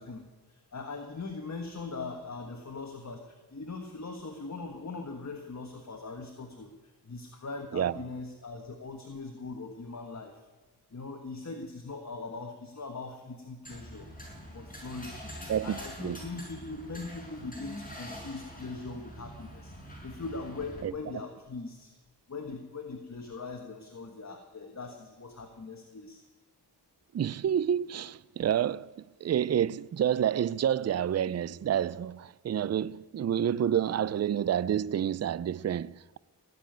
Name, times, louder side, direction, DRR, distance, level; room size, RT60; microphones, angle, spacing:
voice 1, 0.0-10.4 10.9-14.1 14.5-21.9 22.3-26.2, left 3 dB, 40° left, 1.6 m, -41 dB
sound 1, 13.6-20.8, equal, 20° left, 6.1 m, -45 dB
voice 2, 15.5-16.2 20.8-20.9 27.1-28.9 29.2-36.2, right 9 dB, 40° right, 0.4 m, -29 dB
18.0 x 7.0 x 9.2 m
cardioid pair, 60°, 40 cm